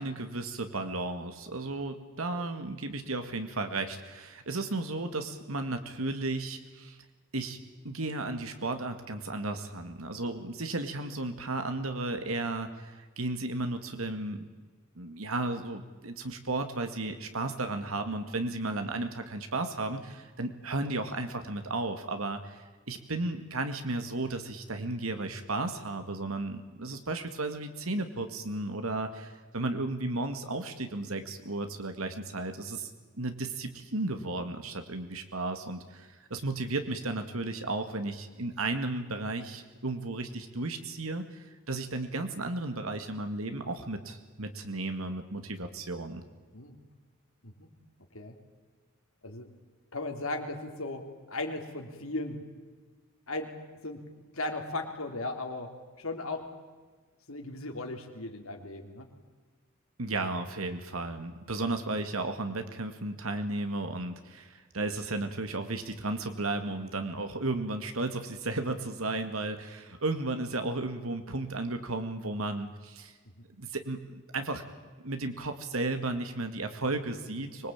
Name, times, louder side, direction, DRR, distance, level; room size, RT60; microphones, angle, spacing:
voice 1, 0.0-7.0 7.3-7.6 7.8-14.4 15.0-32.9 33.2-46.2 60.0-73.1 73.6-74.6 75.0-77.7, right 2 dB, 85° right, 7 dB, 2.0 m, -34 dB
voice 2, 49.9-52.4 53.3-53.5 53.8-54.0 54.3-55.7 56.0-56.5 57.3-59.1 61.5-61.7, left 2 dB, 80° left, 4 dB, 3.5 m, -37 dB
25.0 x 21.0 x 8.9 m, 1.4 s
head